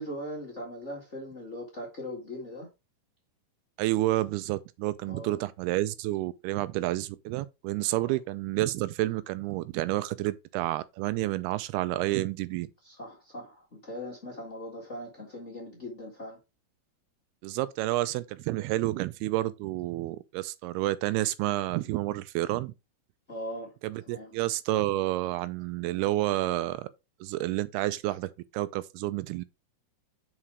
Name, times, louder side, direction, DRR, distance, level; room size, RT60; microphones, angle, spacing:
voice 1, 0.0-2.7 5.1-5.5 7.9-8.1 12.8-16.4 23.3-23.7 24.0-24.3, equal, 30° left, 1.3 m, -40 dB
voice 2, 3.8-12.7 17.4-22.7 23.8-26.9 27.2-29.4, right 16 dB, 90° right, 2.6 m, -30 dB
5.8 x 4.9 x 4.6 m
omnidirectional pair, 4.5 m